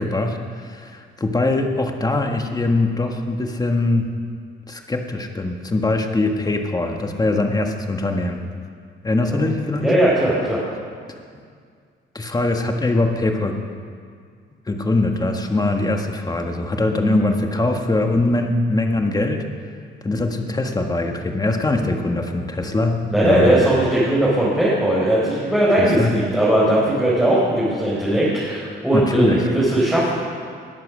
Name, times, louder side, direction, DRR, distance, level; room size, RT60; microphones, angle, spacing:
voice 1, 0.0-4.1 4.7-8.4 9.0-9.9 12.1-13.6 14.7-19.5 20.0-23.6 25.8-26.1 28.9-29.5, left 2 dB, 20° left, 4 dB, 1.5 m, -22 dB
voice 2, 9.8-10.6 23.1-30.1, right 1 dB, 5° right, -8 dB, 4.4 m, -18 dB
20.0 x 7.5 x 6.2 m, 2.1 s
cardioid pair, 90°, 20 cm